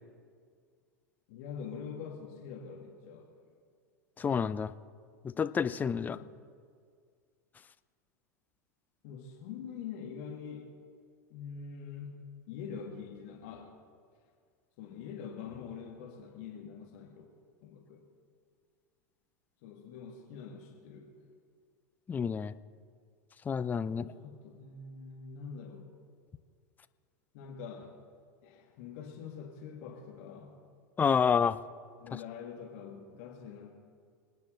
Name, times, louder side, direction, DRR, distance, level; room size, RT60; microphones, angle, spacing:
voice 1, 1.3-3.5 6.0-6.4 9.0-10.7 11.3-13.8 14.8-17.2 17.6-18.0 19.6-21.3 23.9-25.9 27.3-27.9 28.4-30.6 32.0-33.7, left 6 dB, 55° left, 0 dB, 2.1 m, -45 dB
voice 2, 4.2-4.7 5.2-6.2 22.1-22.5 23.5-24.0 31.0-31.6, left 6 dB, 20° left, 13 dB, 0.5 m, -28 dB
27.0 x 9.3 x 3.9 m, 2.1 s
figure-of-eight pair, 90°, 9 cm